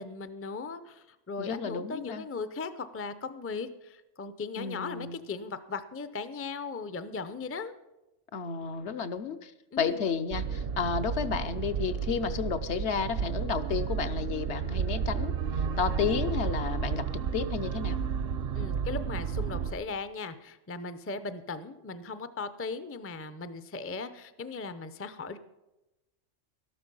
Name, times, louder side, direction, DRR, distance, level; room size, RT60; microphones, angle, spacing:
voice 1, 0.0-7.7 9.7-10.0 18.5-25.4, left 4 dB, 20° left, 12 dB, 0.4 m, -38 dB
voice 2, 1.4-2.3 4.6-5.1 8.3-9.5 9.8-15.3 15.8-17.0 17.3-18.0, left 6 dB, 70° left, 9 dB, 1.1 m, -32 dB
sound 1, 10.3-19.7, right 7 dB, 60° right, 0.8 m, -32 dB
13.0 x 12.0 x 5.5 m, 0.99 s
omnidirectional pair, 1.2 m